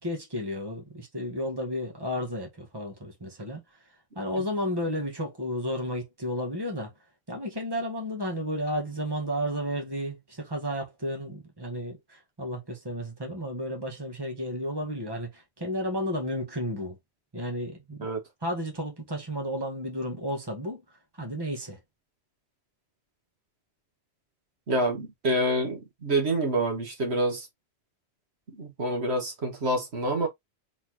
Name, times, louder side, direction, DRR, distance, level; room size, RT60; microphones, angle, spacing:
voice 1, 0.0-3.6 4.1-6.9 7.3-17.0 17.3-18.1 18.4-20.8 21.2-21.8, equal, 20° right, 1.6 m, -32 dB
voice 2, 24.7-27.5 28.6-30.3, right 1 dB, 75° right, 1.7 m, -27 dB
4.1 x 4.0 x 3.0 m
omnidirectional pair, 1.1 m